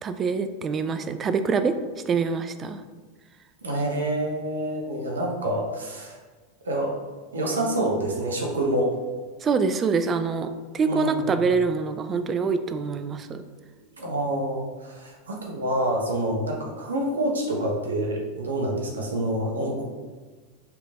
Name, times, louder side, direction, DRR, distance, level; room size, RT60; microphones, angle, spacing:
voice 1, 0.0-1.7 2.1-2.8 9.4-13.4, right 5 dB, 30° right, 9 dB, 0.4 m, -25 dB
voice 2, 3.6-6.2 6.6-6.9 7.3-9.0 10.9-11.4 14.0-19.8, right 1 dB, 85° right, 0 dB, 0.9 m, -27 dB
5.8 x 3.2 x 2.5 m, 1.4 s
hypercardioid pair, 90°, 0 cm